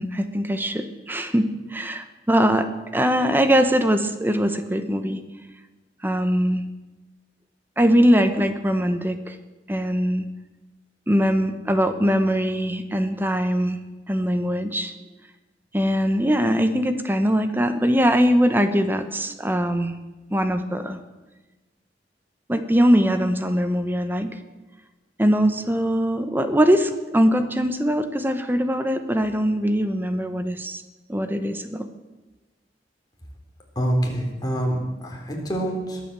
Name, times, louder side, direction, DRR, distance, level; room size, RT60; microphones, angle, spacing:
voice 1, 0.0-5.2 6.0-6.6 7.8-9.4 9.7-10.3 11.1-13.8 14.1-14.9 15.7-20.0 20.3-21.0 22.5-24.4 25.2-30.8 31.1-31.9, equal, 10° right, 9 dB, 0.9 m, -21 dB
voice 2, 33.8-36.0, right 1 dB, 25° left, 0 dB, 3.7 m, -26 dB
21.5 x 8.5 x 7.5 m, 1.2 s
head